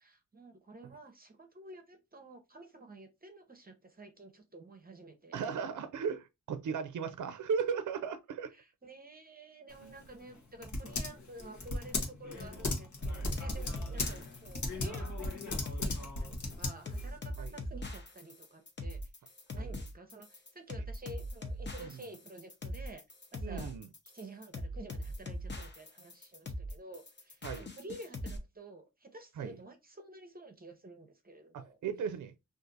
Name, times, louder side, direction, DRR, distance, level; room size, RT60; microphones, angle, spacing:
voice 1, 0.0-5.4 8.5-23.0 23.3-23.7 24.1-31.8, right 2 dB, 30° right, 0.7 m, -51 dB
voice 2, 5.3-8.5 9.8-10.0 17.4-17.5 19.6-19.7 21.8-21.9 23.4-23.9 27.4-27.7 29.4-29.6 31.5-32.3, right 6 dB, 75° right, 0.5 m, -36 dB
Typing, 9.7-17.1, left 2 dB, 70° left, 1.0 m, -37 dB
sound 1, 13.0-28.4, left 1 dB, 35° left, 0.7 m, -41 dB
2.5 x 2.5 x 3.8 m
cardioid pair, 75°, 30 cm